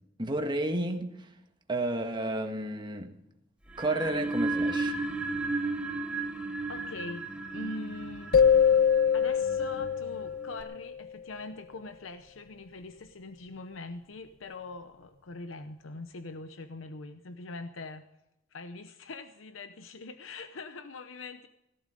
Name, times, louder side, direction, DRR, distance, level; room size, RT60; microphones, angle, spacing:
voice 1, 0.2-1.3 1.7-3.1 3.8-5.0, right 1 dB, 25° right, 4 dB, 1.7 m, -31 dB
sound 1, 3.7-10.6, right 2 dB, 5° right, 1.4 m, -34 dB
voice 2, 6.7-7.2 7.5-8.4 9.1-18.0 18.5-21.5, left 3 dB, 85° left, 9 dB, 0.8 m, -42 dB
sound 2, 8.3-11.0, left 7 dB, 50° left, 0.5 m, -24 dB
17.5 x 12.0 x 5.2 m, 0.87 s
head